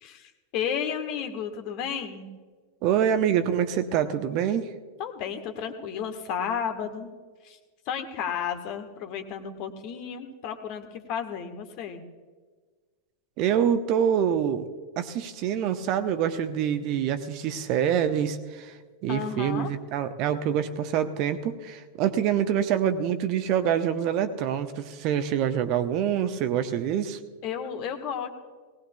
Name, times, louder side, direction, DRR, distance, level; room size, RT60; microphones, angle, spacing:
voice 1, 0.0-2.3 5.0-7.1 7.4-7.6 7.9-12.0 19.1-19.7 27.4-28.3, left 7 dB, 40° left, 7 dB, 1.4 m, -33 dB
voice 2, 2.8-4.7 13.4-14.7 15.0-18.8 19.0-27.2, right 9 dB, 40° right, 10 dB, 0.8 m, -26 dB
19.5 x 18.0 x 2.3 m, 1.5 s
figure-of-eight pair, 90°, 0 cm